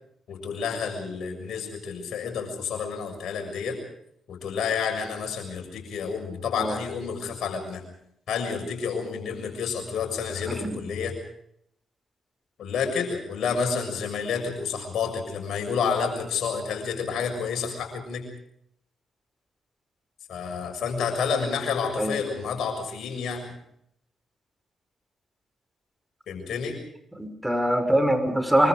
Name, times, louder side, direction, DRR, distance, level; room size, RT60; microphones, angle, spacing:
voice 1, 0.3-3.8 4.3-7.8 8.3-11.1 12.6-18.3 20.3-23.4 26.3-26.8, left 6 dB, 65° left, 4 dB, 6.8 m, -29 dB
voice 2, 27.2-28.7, right 1 dB, 10° right, 7 dB, 6.1 m, -23 dB
25.5 x 24.5 x 5.2 m, 0.73 s
hypercardioid pair, 40°, 0 cm